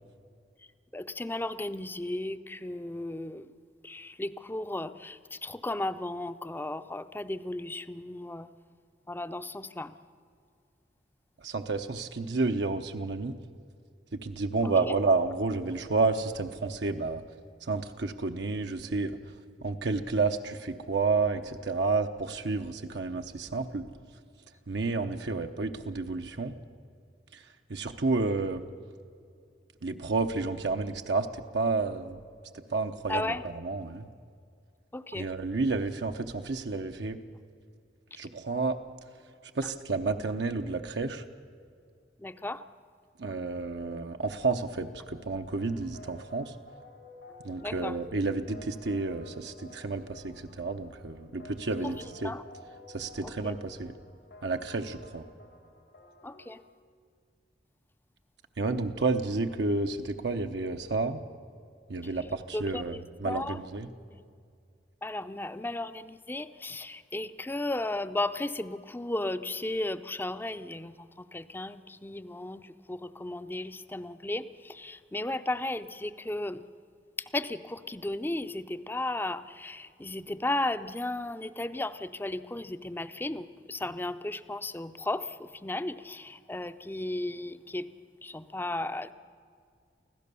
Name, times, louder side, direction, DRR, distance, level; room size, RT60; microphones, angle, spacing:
voice 1, 0.9-3.5 3.8-8.5 9.1-9.9 14.6-14.7 33.1-33.4 34.9-35.3 42.2-42.6 47.6-47.9 52.2-52.4 53.4-53.5 56.2-56.6 62.5-63.6 65.0-71.0 71.3-76.6 77.3-87.9 88.2-89.1, left 2 dB, 10° left, 12 dB, 0.5 m, -35 dB
voice 2, 11.4-13.4 14.1-17.2 17.6-19.2 19.6-23.9 24.7-26.5 27.3-27.4 27.7-28.6 29.8-31.3 31.5-32.2 32.5-34.1 35.1-37.2 38.2-38.8 39.5-41.2 43.2-46.5 47.4-52.3 52.9-53.9 54.4-55.3 58.6-61.2 61.9-63.9, right 3 dB, 75° right, 5 dB, 0.8 m, -30 dB
sound 1, 45.0-56.7, left 1 dB, 90° left, 3.3 m, -52 dB
24.5 x 16.0 x 6.9 m, 2.3 s
head